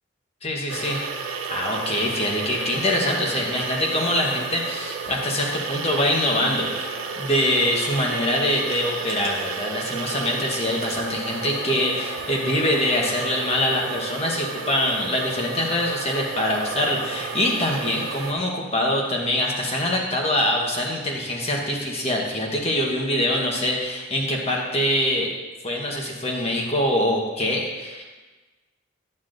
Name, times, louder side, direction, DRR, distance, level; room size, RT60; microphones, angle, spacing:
voice 1, 0.4-25.3 25.6-28.0, left 1 dB, 30° left, -1 dB, 1.2 m, -24 dB
sound 1, 0.7-18.3, right 4 dB, 80° right, 0.7 m, -32 dB
9.7 x 9.1 x 2.6 m, 1.2 s
head